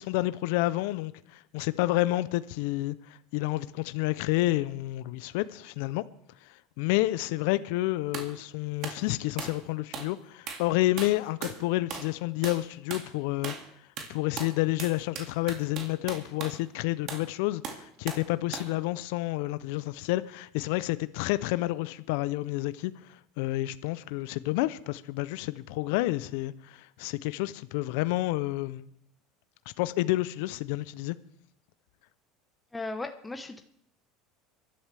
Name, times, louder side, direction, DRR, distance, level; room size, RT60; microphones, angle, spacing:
voice 1, 0.0-6.0 6.4-13.5 14.1-28.9 29.8-31.2, left 18 dB, 70° left, 0.5 m, -29 dB
sound 1, 8.1-8.3 8.8-9.0 9.4-9.6 9.9-10.1 10.5-10.7 11.0-11.6 11.9-12.1 12.4-12.6 12.9-13.1 13.4-13.7 14.0-16.6 17.1-17.3 17.6-18.3 18.5-18.7, right 6 dB, 55° right, 2.2 m, -38 dB
voice 2, 32.7-33.6, left 2 dB, 15° left, 1.1 m, -36 dB
25.0 x 11.5 x 3.4 m
hypercardioid pair, 90°, 0 cm